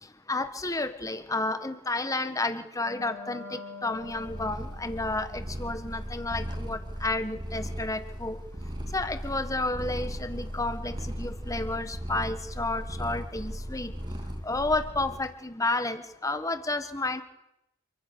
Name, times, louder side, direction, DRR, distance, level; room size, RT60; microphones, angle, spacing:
voice 1, 0.0-8.4 8.9-13.9 14.4-17.2, left 2 dB, 15° left, 10 dB, 1.5 m, -31 dB
Wind instrument woodwind instrument, 2.8-7.9, left 3 dB, 85° left, 6.2 m, -48 dB
Purr, 4.0-15.3, equal, 20° right, 2.7 m, -37 dB
27.5 x 24.0 x 6.9 m, 0.87 s
head